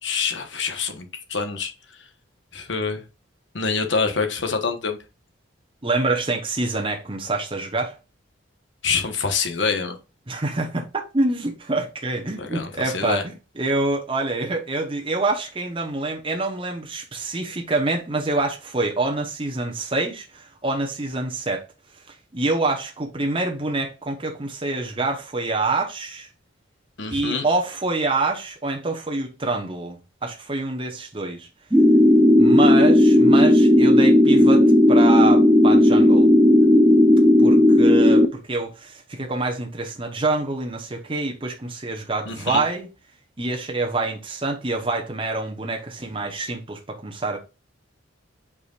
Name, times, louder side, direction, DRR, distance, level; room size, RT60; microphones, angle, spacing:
voice 1, 0.0-1.7 2.5-3.0 3.5-5.0 8.8-10.0 12.4-13.2 27.0-27.4 42.3-42.6, left 5 dB, 65° left, 1.3 m, -26 dB
voice 2, 5.8-8.0 10.3-10.9 11.1-21.6 22.3-26.3 27.1-31.5 32.4-36.3 37.4-42.9 43.4-47.4, right 2 dB, 25° right, 1.0 m, -26 dB
sound 1, 31.7-38.3, left 1 dB, 10° right, 0.6 m, -14 dB
8.3 x 4.9 x 2.5 m
head